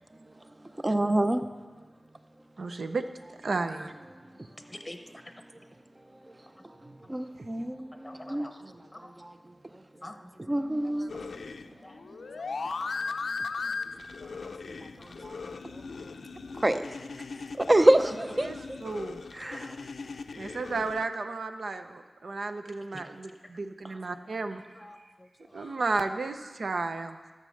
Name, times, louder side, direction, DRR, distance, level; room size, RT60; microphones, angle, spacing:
voice 1, 0.2-1.5 2.6-2.8 4.1-4.7 6.1-9.8 10.4-11.6 12.1-13.1 13.6-13.7 14.7-16.1 16.6-16.9 17.5-18.8 19.3-19.8, right 1 dB, 25° right, 0.7 m, -29 dB
voice 2, 2.6-3.0 3.4-3.9 18.4-18.6 18.8-19.2 20.4-24.6 25.5-27.2, right 3 dB, 75° right, 0.7 m, -33 dB
voice 3, 4.7-5.0 5.2-5.3 7.0-7.1 8.0-8.5 8.9-9.1 10.0-10.6 11.8-12.0 12.6-12.7 13.7-13.8 14.1-15.6 22.9-23.0 24.5-25.8, left 1 dB, 20° left, 0.8 m, -48 dB
sound 1, 11.1-21.1, left 4 dB, 85° left, 0.4 m, -38 dB
12.5 x 6.8 x 6.4 m
wide cardioid pair, 70°, 0 cm